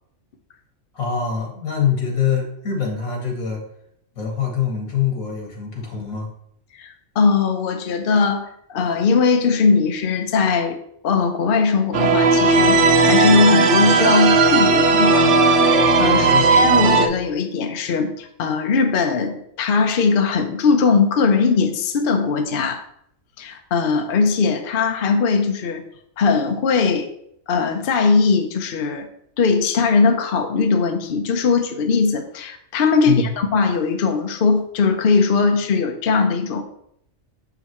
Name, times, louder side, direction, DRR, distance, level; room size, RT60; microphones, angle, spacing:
voice 1, 0.9-3.6 4.2-6.3 16.1-16.5 33.1-33.3, left 7 dB, 90° left, 0 dB, 2.1 m, -24 dB
voice 2, 6.8-10.8 11.0-22.8 23.4-25.8 26.2-27.1 27.5-29.1 29.4-36.6, left 4 dB, 50° left, 5 dB, 0.8 m, -20 dB
sound 1, 11.9-17.1, right 3 dB, 65° right, 0.9 m, -15 dB
6.9 x 5.9 x 3.0 m, 0.72 s
omnidirectional pair, 1.4 m